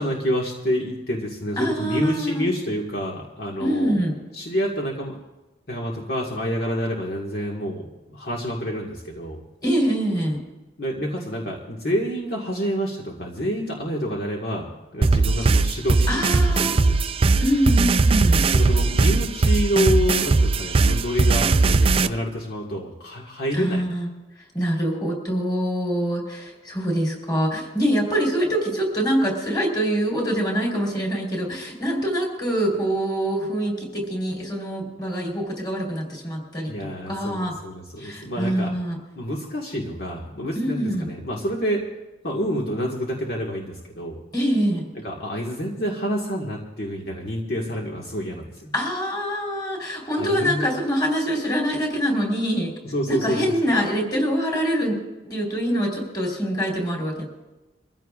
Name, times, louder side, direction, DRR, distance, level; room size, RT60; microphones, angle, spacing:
voice 1, 0.0-4.0 4.3-5.1 5.7-7.8 8.1-9.4 10.8-17.0 18.5-23.9 36.7-38.7 39.2-41.8 42.2-44.2 45.0-48.7 50.2-50.7 52.8-53.4, equal, 55° left, -2 dB, 1.7 m, -28 dB
voice 2, 1.6-2.4 3.6-4.1 9.6-10.4 16.1-16.8 17.4-18.5 23.5-24.1 24.5-37.5 38.0-39.0 40.5-41.1 44.3-44.8 48.7-52.7 53.1-55.0 55.3-57.2, equal, 20° left, 0 dB, 3.9 m, -24 dB
sound 1, 15.0-22.1, right 3 dB, 30° right, 0.4 m, -19 dB
24.0 x 15.0 x 2.5 m, 1.1 s
head